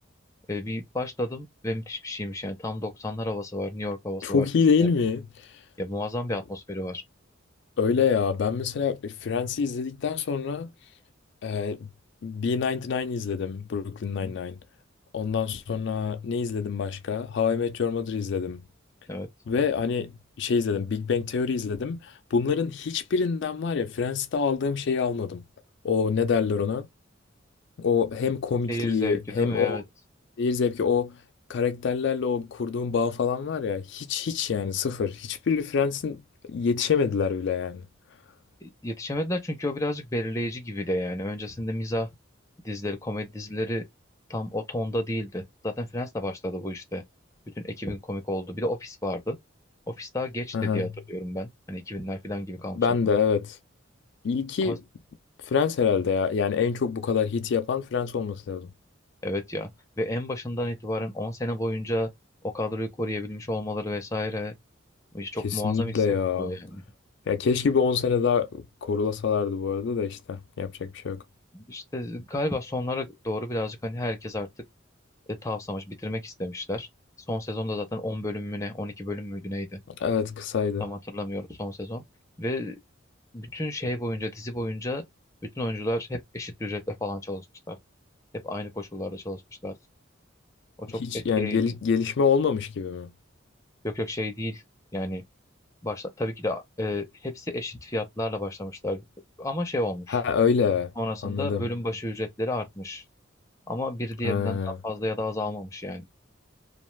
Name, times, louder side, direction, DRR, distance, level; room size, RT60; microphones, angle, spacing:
voice 1, 0.5-4.5 4.8-4.9 5.8-7.0 14.2-14.4 19.1-19.3 28.7-29.8 38.6-42.1 42.6-43.9 44.3-47.0 47.6-49.4 49.9-52.9 54.6-54.8 59.2-59.7 60.0-62.1 62.4-64.5 65.1-66.8 71.5-74.5 75.3-76.9 77.3-79.8 80.8-82.0 82.4-82.8 83.3-85.0 85.4-87.8 88.3-89.7 90.8-91.6 93.8-94.6 94.9-95.2 95.8-99.0 99.4-100.2 101.0-103.0 103.7-106.1, left 1 dB, 15° left, 0.6 m, -31 dB
voice 2, 4.2-5.6 7.8-10.7 11.4-11.9 12.2-14.6 15.1-18.6 19.5-20.1 20.4-25.4 25.8-26.9 27.8-29.8 30.4-31.2 31.5-36.2 36.5-37.8 50.5-50.9 52.8-53.6 54.2-54.8 55.5-58.7 65.4-66.5 67.3-71.2 80.0-80.8 91.0-93.1 100.1-100.9 101.2-101.6 104.2-104.8, left 6 dB, 60° left, 0.4 m, -26 dB
2.4 x 2.3 x 3.1 m
head